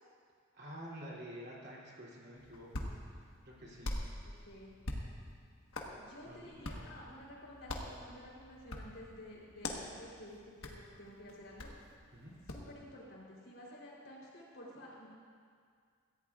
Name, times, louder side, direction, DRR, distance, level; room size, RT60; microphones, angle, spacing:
voice 1, 0.5-3.2 3.4-3.9 6.2-6.9 12.1-12.3, equal, 50° right, -5 dB, 2.9 m, -49 dB
Hands, 2.4-12.7, left 1 dB, 90° left, 1.3 m, -45 dB
voice 2, 4.2-4.8 5.9-11.7 12.5-15.1, left 1 dB, 70° left, -4 dB, 3.5 m, -52 dB
17.0 x 14.5 x 2.4 m, 2.1 s
head